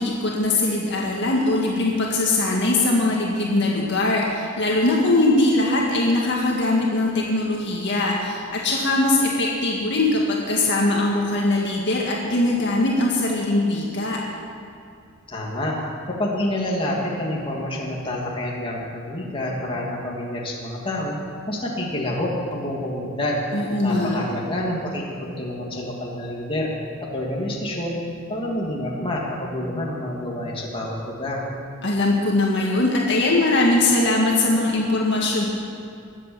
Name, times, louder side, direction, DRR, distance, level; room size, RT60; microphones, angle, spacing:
voice 1, 0.0-14.2 23.5-24.2 31.8-35.5, left 2 dB, 55° left, -2 dB, 1.9 m, -21 dB
voice 2, 15.3-15.8 16.0-21.2 21.5-23.4 23.8-26.7 27.1-28.0 28.3-31.4, left 1 dB, 25° left, -3 dB, 2.8 m, -28 dB
21.5 x 8.3 x 7.4 m, 2.5 s
head